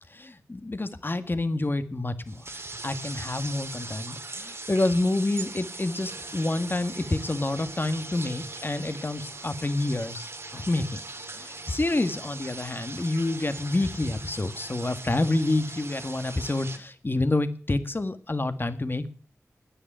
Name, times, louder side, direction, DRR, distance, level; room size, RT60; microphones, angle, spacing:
voice 1, 0.1-2.5 2.8-11.0 11.3-19.1, left 2 dB, 40° left, 11 dB, 1.8 m, -28 dB
sound 1, 2.3-16.8, right 3 dB, 50° right, 2.3 m, -40 dB
14.5 x 10.0 x 9.0 m, 0.42 s
wide cardioid pair, 60°, 6 cm